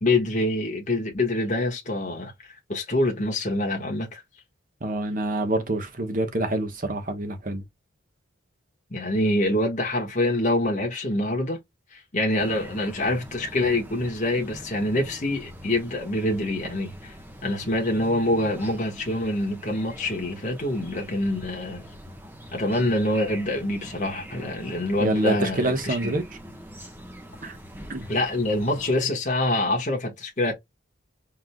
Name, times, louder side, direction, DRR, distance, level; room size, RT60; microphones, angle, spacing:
voice 1, 0.0-4.2 8.9-11.6 11.9-17.2 17.4-21.8 22.5-26.1 28.1-30.5, left 1 dB, 35° left, 1.4 m, -25 dB
voice 2, 4.8-7.6 25.0-26.2 27.4-27.6 27.9-28.1, right 1 dB, 40° right, 1.0 m, -26 dB
sound 1, 12.4-29.0, equal, 10° right, 1.0 m, -43 dB
4.5 x 3.7 x 2.2 m
head